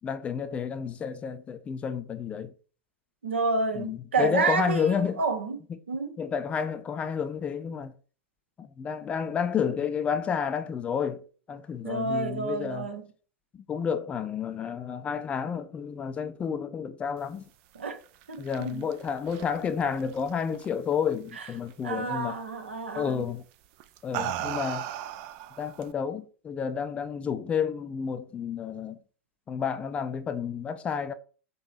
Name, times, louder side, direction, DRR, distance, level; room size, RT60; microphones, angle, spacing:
voice 1, 0.0-2.5 3.7-5.2 6.2-7.9 8.6-12.9 13.5-17.5 18.4-22.4 22.9-23.4 24.0-24.9 25.6-29.0 29.5-31.1, left 7 dB, 20° left, 0.4 m, -30 dB
voice 2, 3.2-5.6 5.9-6.2 11.8-13.0 17.7-18.0 18.3-18.8 21.4-21.5 21.8-23.3, right 4 dB, 65° right, 0.9 m, -29 dB
sound 1, 18.0-20.9 21.3-21.7 23.0-23.2 23.8-25.9, right 11 dB, 40° right, 0.4 m, -36 dB
3.9 x 2.9 x 4.1 m
figure-of-eight pair, 95°, 7 cm